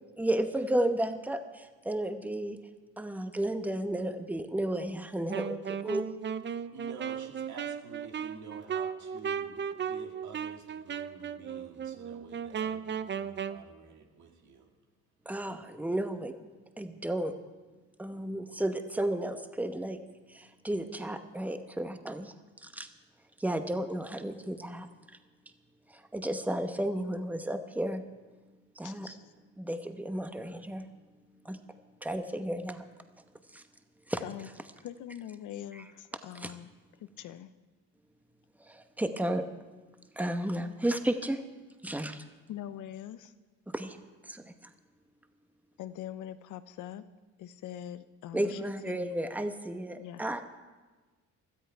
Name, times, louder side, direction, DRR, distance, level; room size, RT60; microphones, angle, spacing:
voice 1, 0.2-2.6 3.0-6.1 15.2-16.4 16.8-17.3 18.0-20.0 20.3-22.9 23.4-25.2 25.9-28.0 28.8-29.1 29.6-30.9 31.4-31.6 32.0-32.8 33.5-33.6 34.1-34.2 35.7-35.8 36.3-36.5 38.6-39.5 40.2-41.4 41.8-42.2 43.7-44.0 44.2-44.5 48.3-50.4, right 1 dB, 5° right, 1.0 m, -33 dB
Wind instrument woodwind instrument, 5.3-13.6, right 7 dB, 35° right, 0.6 m, -36 dB
voice 2, 6.7-14.7, right 5 dB, 70° right, 2.1 m, -50 dB
voice 3, 28.8-29.2 34.2-34.5 34.8-36.7 37.0-37.5 42.5-43.3 45.8-47.1 47.4-49.1 50.0-50.2, left 11 dB, 80° left, 0.8 m, -43 dB
17.0 x 13.0 x 4.6 m
cardioid pair, 90°, 30 cm